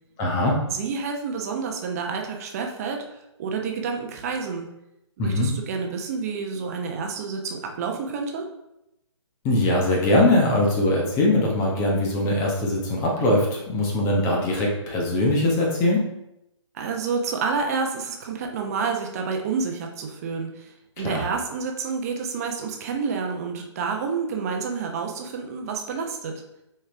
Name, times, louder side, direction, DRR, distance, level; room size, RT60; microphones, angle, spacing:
voice 1, 0.2-0.5 5.2-5.5 9.4-16.0 21.0-21.2, left 1 dB, 20° left, -2 dB, 1.2 m, -21 dB
voice 2, 0.7-3.0 3.4-4.7 5.2-8.5 16.7-26.4, right 5 dB, 30° right, 2 dB, 0.9 m, -29 dB
7.1 x 4.5 x 3.4 m, 0.87 s
figure-of-eight pair, 135°, 16 cm